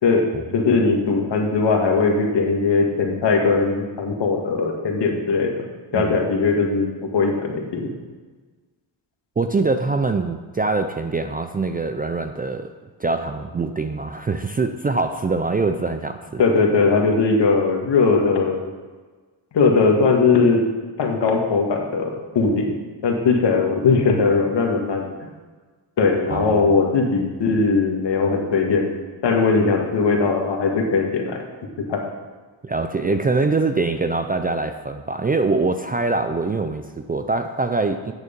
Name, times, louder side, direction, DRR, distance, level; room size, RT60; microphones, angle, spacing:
voice 1, 0.5-5.6 5.9-6.9 7.1-7.9 16.4-18.6 19.5-20.6 21.0-22.7 23.0-25.1 26.0-28.9 29.2-31.4 31.9-32.0, left 4 dB, 65° left, 1 dB, 1.8 m, -19 dB
voice 2, 9.4-12.7 13.0-16.4 26.3-26.7 32.6-38.1, right 3 dB, 20° right, 7 dB, 0.4 m, -23 dB
9.3 x 6.6 x 5.2 m, 1.4 s
cardioid pair, 100°, 46 cm